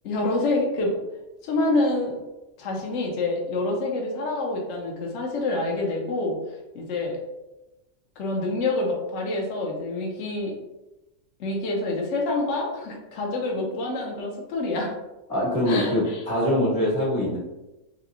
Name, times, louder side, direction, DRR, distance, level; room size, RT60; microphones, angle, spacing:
voice 1, 0.0-1.0 1.4-2.2 2.6-6.4 6.7-7.2 8.2-10.5 11.4-14.9 15.7-16.2, left 2 dB, 60° left, 0 dB, 0.9 m, -27 dB
voice 2, 15.3-17.4, left 1 dB, 25° left, -7 dB, 1.4 m, -23 dB
3.3 x 3.1 x 2.4 m, 1.0 s
omnidirectional pair, 1.6 m